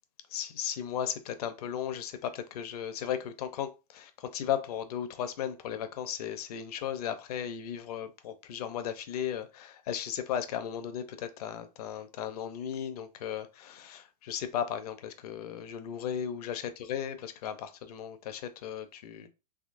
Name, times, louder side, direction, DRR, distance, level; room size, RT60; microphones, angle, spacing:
voice 1, 0.3-19.3, left 9 dB, 65° left, 0.6 m, -36 dB
3.6 x 2.9 x 2.5 m
hypercardioid pair, 130°, 21 cm